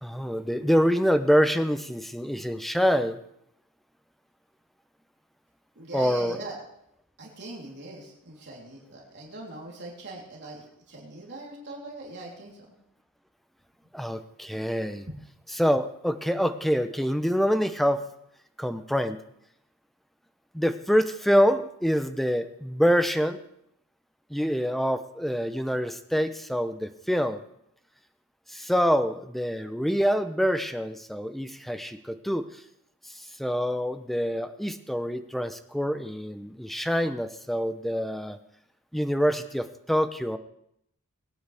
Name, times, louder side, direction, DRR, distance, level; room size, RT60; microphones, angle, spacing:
voice 1, 0.0-3.2 5.9-6.4 13.9-15.1 15.5-18.1 18.6-19.2 20.5-23.4 24.3-27.4 28.5-32.5 33.1-38.4 38.9-40.4, equal, ahead, 10 dB, 0.6 m, -26 dB
voice 2, 5.8-6.6 7.2-12.7, right 2 dB, 50° right, -3 dB, 3.3 m, -41 dB
21.5 x 9.4 x 3.4 m, 0.74 s
head